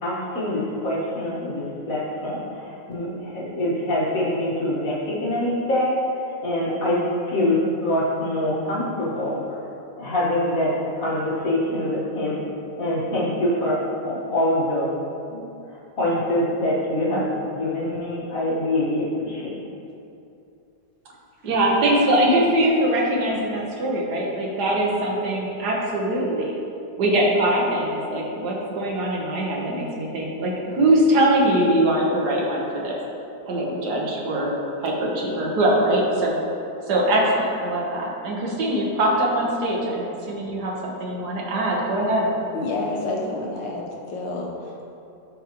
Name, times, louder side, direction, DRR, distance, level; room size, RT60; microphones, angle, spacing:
voice 1, 0.0-5.9 6.4-9.6 10.0-12.4 12.8-14.9 15.3-15.4 16.0-19.5, left 1 dB, 50° left, -6 dB, 1.9 m, -24 dB
voice 2, 21.4-26.6 27.0-33.0 33.5-34.5 34.8-36.3 36.9-42.3, right 1 dB, 65° right, -3 dB, 1.8 m, -22 dB
voice 3, 42.5-44.8, left 2 dB, 80° left, -1 dB, 1.8 m, -29 dB
13.0 x 4.8 x 3.1 m, 2.7 s
omnidirectional pair, 2.0 m